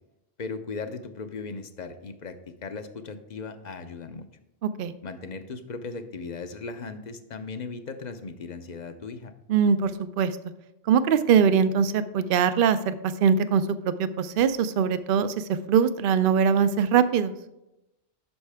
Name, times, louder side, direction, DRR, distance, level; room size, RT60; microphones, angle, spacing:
voice 1, 0.4-4.3 5.0-9.3, left 4 dB, 45° left, 9 dB, 0.7 m, -37 dB
voice 2, 4.6-4.9 9.5-10.3 10.9-13.0 13.2-17.3, right 7 dB, 60° right, 12 dB, 0.7 m, -22 dB
9.7 x 6.5 x 3.4 m, 0.92 s
omnidirectional pair, 1.2 m